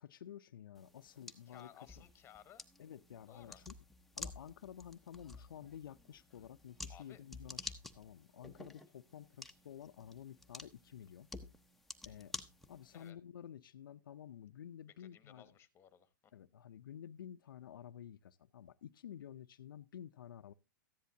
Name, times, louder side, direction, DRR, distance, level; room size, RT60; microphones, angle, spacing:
voice 1, 0.0-2.0 2.8-3.8 4.1-11.3 12.0-12.3 12.7-15.5 16.3-20.5, left 9 dB, 85° left, 0.5 m, -52 dB
sound 1, 0.7-13.1, left 2 dB, ahead, 0.7 m, -51 dB
voice 2, 1.5-2.6 3.3-3.6 6.9-7.2 12.9-13.2 15.0-16.3, left 10 dB, 20° left, 1.1 m, -59 dB
14.0 x 10.5 x 2.7 m
hypercardioid pair, 130°, 11 cm